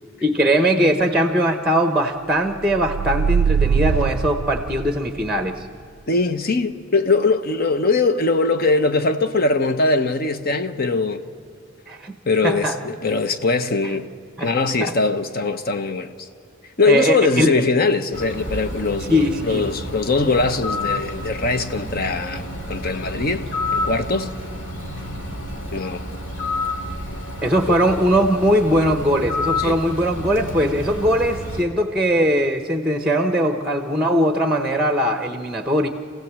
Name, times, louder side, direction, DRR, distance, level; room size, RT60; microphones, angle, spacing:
voice 1, 0.2-5.7 11.9-12.2 12.4-12.8 14.4-14.5 14.8-14.9 16.8-17.6 19.1-19.7 27.4-35.9, equal, 5° right, 0.9 m, -20 dB
sound 1, 2.6-5.3, right 7 dB, 85° right, 0.4 m, -22 dB
voice 2, 6.1-11.2 12.3-14.1 14.4-16.3 16.8-24.3 25.7-26.1 29.6-29.8, left 3 dB, 50° left, 1.0 m, -21 dB
Bird, 18.1-31.6, left 2 dB, 70° left, 2.3 m, -30 dB
27.0 x 16.0 x 7.5 m
head